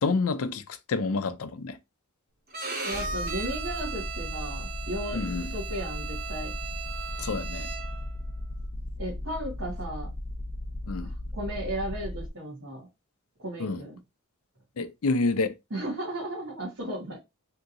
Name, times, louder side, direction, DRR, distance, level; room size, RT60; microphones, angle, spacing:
voice 1, 0.0-1.8 5.1-5.5 7.2-7.7 10.9-11.1 13.6-13.8 14.8-15.6, left 3 dB, 80° left, 0.5 m, -28 dB
Bowed string instrument, 2.5-8.1, right 5 dB, 45° right, 0.9 m, -37 dB
voice 2, 2.8-6.5 9.0-10.1 10.8-12.9 13.4-14.0 15.7-17.2, right 1 dB, 70° right, 1.6 m, -35 dB
sound 1, 2.9-12.3, left 1 dB, 20° left, 0.4 m, -36 dB
3.5 x 2.9 x 2.6 m
head